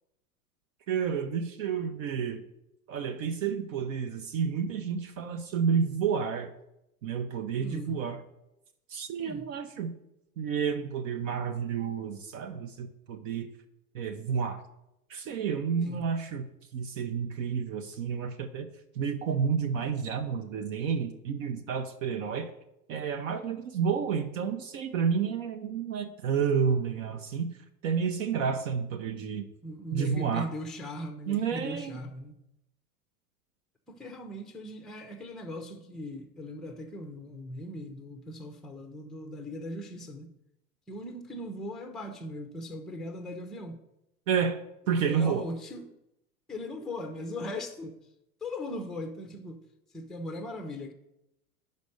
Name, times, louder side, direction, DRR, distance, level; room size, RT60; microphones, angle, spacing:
voice 1, 0.9-2.4 2.9-6.5 7.0-8.2 8.9-9.9 10.4-13.5 13.9-14.6 15.1-16.5 16.7-18.7 18.9-22.5 22.9-27.5 27.8-29.5 29.9-30.5 31.3-32.0 44.3-44.6 44.9-45.5, right 6 dB, 55° right, 0.7 m, -30 dB
voice 2, 7.6-8.0 9.2-9.5 15.8-16.1 29.6-32.4 33.9-40.3 40.9-43.8 45.0-45.9 46.5-48.0 48.4-49.6 49.9-50.9, left 1 dB, ahead, 0.5 m, -39 dB
5.3 x 5.2 x 6.6 m
figure-of-eight pair, 90°, 48 cm